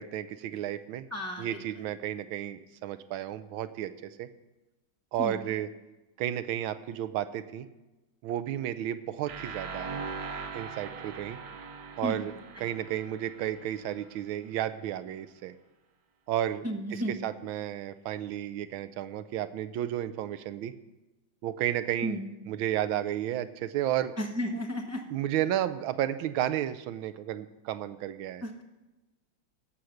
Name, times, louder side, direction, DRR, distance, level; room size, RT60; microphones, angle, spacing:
voice 1, 0.0-1.1 1.4-4.3 5.1-5.7 6.2-7.7 8.2-9.9 10.5-11.4 12.0-15.5 16.3-16.6 16.9-20.7 21.4-22.2 22.5-24.1 25.1-28.4, right 11 dB, 85° right, 12 dB, 1.4 m, -32 dB
voice 2, 1.1-1.6 5.2-5.4 12.0-12.2 16.6-17.2 22.0-22.4 24.2-25.0 28.4-28.6, equal, 15° right, 0 dB, 0.4 m, -33 dB
sound 1, 9.3-14.1, right 5 dB, 55° right, 1.3 m, -41 dB
16.0 x 5.9 x 6.5 m, 1.1 s
omnidirectional pair, 2.2 m